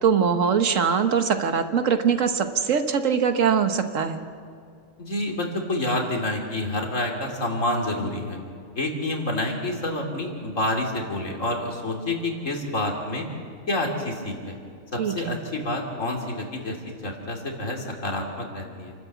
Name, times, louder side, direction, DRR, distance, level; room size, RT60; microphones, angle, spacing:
voice 1, 0.0-4.2 15.0-15.4, right 6 dB, 80° right, 7 dB, 1.6 m, -22 dB
voice 2, 5.0-8.4 8.7-13.3 13.7-14.6 14.9-16.8 17.0-18.9, left 1 dB, 80° left, 1 dB, 3.2 m, -28 dB
28.0 x 12.5 x 8.2 m, 2.3 s
omnidirectional pair, 1.3 m